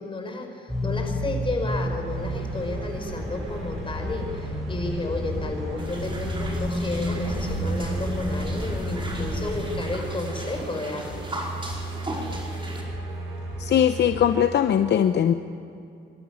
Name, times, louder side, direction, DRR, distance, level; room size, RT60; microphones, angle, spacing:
voice 1, 0.0-11.3, left 2 dB, 25° left, 3 dB, 5.3 m, -32 dB
sound 1, 0.7-9.8, equal, ahead, 7.0 m, -31 dB
sound 2, 2.1-14.5, right 2 dB, 85° right, 8.0 m, -36 dB
sound 3, 5.8-12.8, right 1 dB, 25° right, 5.0 m, -38 dB
voice 2, 13.6-15.3, left 9 dB, 60° left, 8 dB, 0.8 m, -20 dB
25.5 x 13.0 x 9.7 m, 2.6 s
cardioid pair, 90°, 20 cm